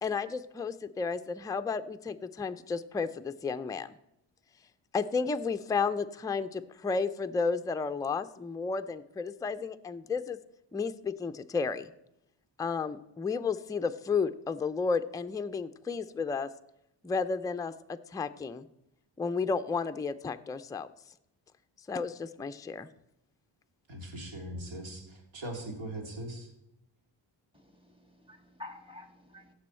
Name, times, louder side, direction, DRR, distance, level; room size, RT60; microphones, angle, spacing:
voice 1, 0.0-4.0 4.9-10.4 10.7-11.9 12.6-16.5 17.0-18.7 19.2-20.9 21.9-22.9, left 5 dB, 10° left, 9 dB, 0.4 m, -32 dB
voice 2, 23.9-26.5, right 1 dB, 75° right, 2 dB, 2.6 m, -40 dB
voice 3, 27.5-29.5, left 2 dB, 10° right, 5 dB, 1.9 m, -49 dB
16.0 x 6.2 x 4.4 m, 0.82 s
cardioid pair, 85°, 46 cm